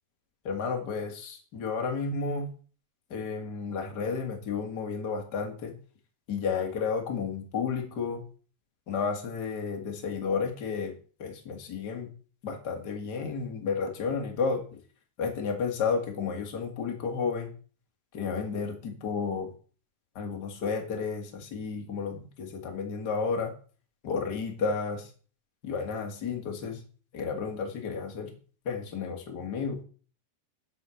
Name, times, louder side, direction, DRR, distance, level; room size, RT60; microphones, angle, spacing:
voice 1, 0.4-2.5 3.1-5.7 6.3-8.2 8.9-10.9 11.2-12.1 12.4-14.8 15.2-17.5 18.1-19.5 20.1-23.5 24.0-25.1 25.6-26.8 27.1-28.3 28.6-29.8, left 5 dB, 45° left, 2 dB, 1.3 m, -32 dB
8.1 x 6.5 x 6.4 m, 0.39 s
omnidirectional pair, 5.0 m